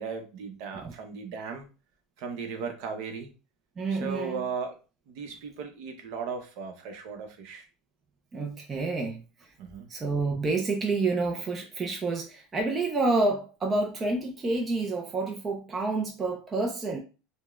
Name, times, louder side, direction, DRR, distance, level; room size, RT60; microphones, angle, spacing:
voice 1, 0.0-1.7 2.2-3.3 4.0-4.8 5.1-7.7 9.6-9.9, right 5 dB, 55° right, 0.8 m, -36 dB
voice 2, 3.8-4.4 8.3-9.2 9.9-17.0, right 3 dB, 20° right, 0.4 m, -28 dB
5.1 x 2.1 x 2.4 m
supercardioid pair, 150°, 0 cm